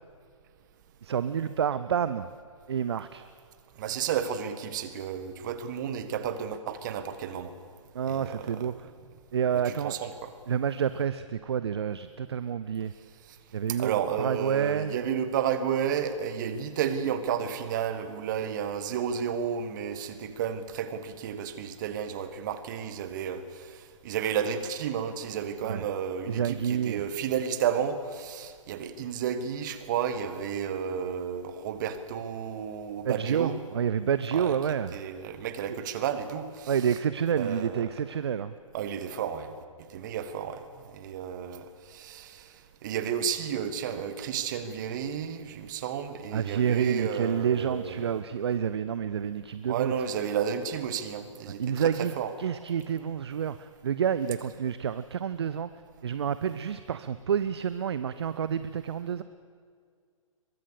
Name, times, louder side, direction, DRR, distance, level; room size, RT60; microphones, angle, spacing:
voice 1, 1.0-2.3 2.7-3.2 7.9-8.9 9.3-10.0 10.5-12.9 13.5-14.9 25.6-25.9 26.3-27.0 33.0-35.0 35.7-35.8 36.7-38.6 46.3-49.9 51.6-55.7 56.0-59.2, right 8 dB, 50° right, 13 dB, 0.7 m, -29 dB
voice 2, 3.8-7.5 8.1-8.6 9.6-10.3 13.8-23.7 24.0-33.6 34.3-34.5 34.9-36.7 37.4-37.8 38.7-39.5 39.9-40.6 40.9-42.5 42.8-48.1 49.7-52.3, right 8 dB, 35° right, 11 dB, 1.7 m, -32 dB
22.5 x 22.5 x 6.8 m, 2.1 s
figure-of-eight pair, 125°, 17 cm